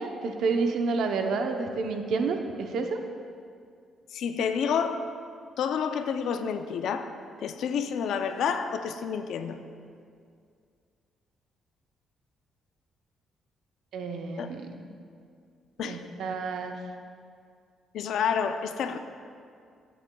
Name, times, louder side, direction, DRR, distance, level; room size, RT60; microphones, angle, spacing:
voice 1, 0.0-3.0 13.9-14.9 15.8-16.8, right 4 dB, 75° right, 4 dB, 0.7 m, -29 dB
voice 2, 4.1-5.1 5.6-7.1 7.4-9.6 14.4-14.5 15.8-16.0 17.9-19.0, left 7 dB, 75° left, 8 dB, 0.5 m, -29 dB
14.5 x 7.7 x 2.3 m, 2.3 s
cardioid pair, 90°, 0 cm